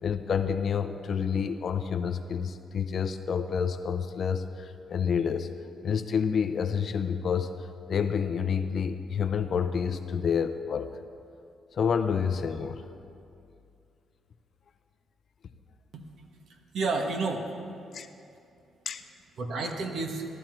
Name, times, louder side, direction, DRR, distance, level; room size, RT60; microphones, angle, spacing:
voice 1, 0.0-5.5 5.8-7.6 7.9-10.9 11.7-12.8 17.9-18.1 18.9-19.0, left 6 dB, 50° left, 9 dB, 0.6 m, -28 dB
voice 2, 16.5-17.5 19.4-20.3, right 3 dB, 65° right, 3 dB, 1.3 m, -31 dB
14.5 x 13.0 x 4.5 m, 2.5 s
cardioid pair, 130°, 0 cm